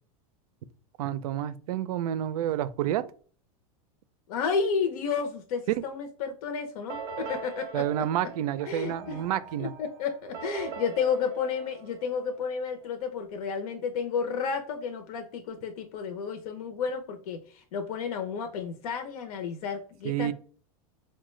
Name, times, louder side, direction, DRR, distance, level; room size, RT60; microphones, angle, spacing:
voice 1, 1.0-3.0 7.7-9.7 20.0-20.3, right 11 dB, 85° right, 0.4 m, -29 dB
voice 2, 4.3-7.8 8.7-9.2 9.6-20.3, left 6 dB, 80° left, 0.6 m, -31 dB
sound 1, 6.9-12.6, right 6 dB, 30° right, 0.4 m, -42 dB
4.5 x 2.2 x 3.1 m
supercardioid pair, 170°, 19 cm